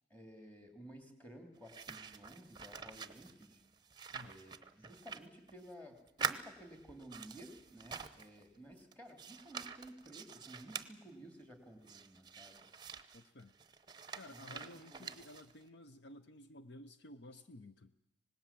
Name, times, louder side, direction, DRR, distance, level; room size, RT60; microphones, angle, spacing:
voice 1, 0.1-3.6 4.2-12.7 14.3-15.1, right 1 dB, 10° left, 5 dB, 3.1 m, -55 dB
sound 1, 1.6-5.8 6.1-8.4 8.8-10.9 11.9-15.7, right 6 dB, 20° right, 0.8 m, -46 dB
voice 2, 13.1-13.5 14.2-17.9, left 1 dB, 60° left, 10 dB, 0.8 m, -54 dB
25.5 x 19.0 x 7.4 m, 0.86 s
head